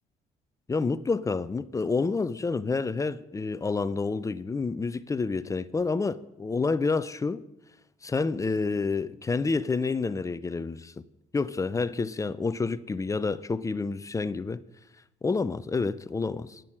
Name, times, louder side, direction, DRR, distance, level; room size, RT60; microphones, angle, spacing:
voice 1, 0.7-7.4 8.0-10.9 11.3-14.6 15.2-16.6, left 4 dB, 20° left, 0.6 m, -28 dB
10.5 x 9.2 x 9.9 m
cardioid pair, 110°, 17 cm